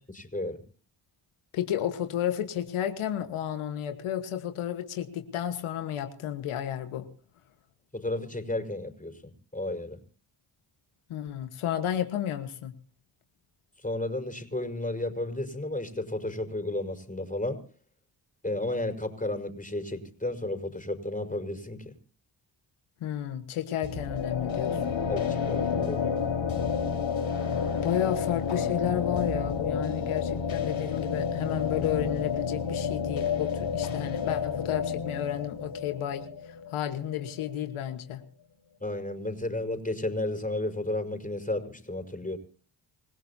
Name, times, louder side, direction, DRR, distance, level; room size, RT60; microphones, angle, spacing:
voice 1, 0.1-0.6 7.9-10.0 13.8-17.6 18.4-21.9 25.1-26.3 38.8-42.4, left 1 dB, 15° left, 7 dB, 5.1 m, -33 dB
voice 2, 1.5-7.1 11.1-12.7 23.0-25.0 27.8-38.2, left 10 dB, 90° left, 7 dB, 1.5 m, -32 dB
sound 1, 23.8-37.5, left 6 dB, 70° left, 4.5 m, -30 dB
27.0 x 16.5 x 2.8 m, 0.41 s
supercardioid pair, 45°, 48 cm